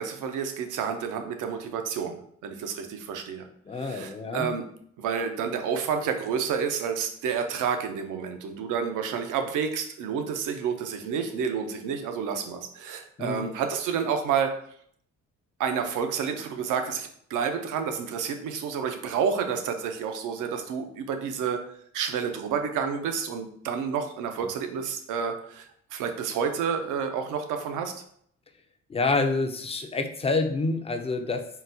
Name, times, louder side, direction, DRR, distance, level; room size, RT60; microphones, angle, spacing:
voice 1, 0.0-3.5 3.7-4.6 5.0-14.6 15.6-21.6 21.9-28.0, right 6 dB, 85° right, 6 dB, 0.6 m, -30 dB
voice 2, 3.7-4.5 13.2-13.5 28.9-31.5, left 3 dB, 20° left, 6 dB, 0.3 m, -27 dB
3.8 x 2.1 x 2.7 m, 0.64 s
cardioid pair, 90°, 30 cm